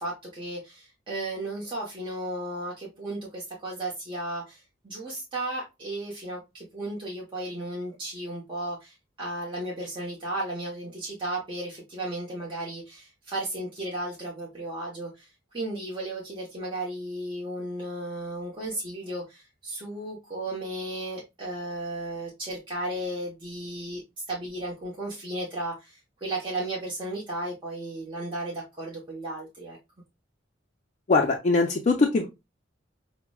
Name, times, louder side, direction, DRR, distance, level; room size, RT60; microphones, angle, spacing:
voice 1, 0.0-29.8, right 1 dB, 25° right, 0.9 m, -34 dB
voice 2, 31.1-32.3, left 3 dB, 40° left, 0.4 m, -22 dB
5.7 x 2.1 x 2.2 m
head